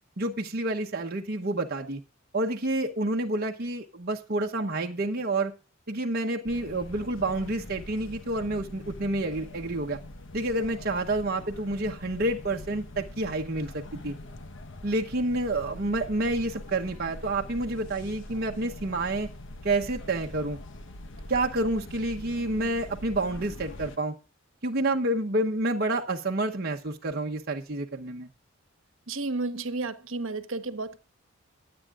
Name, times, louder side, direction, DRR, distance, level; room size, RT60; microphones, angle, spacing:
voice 1, 0.2-2.0 2.3-5.5 5.9-10.0 10.3-14.1 14.8-19.3 19.6-20.6 21.3-24.2 24.6-28.3, right 2 dB, 45° right, 0.9 m, -29 dB
sound 1, 6.4-24.0, left 1 dB, 60° left, 1.1 m, -43 dB
voice 2, 29.1-31.0, right 3 dB, 65° right, 1.2 m, -32 dB
23.5 x 8.6 x 2.4 m
head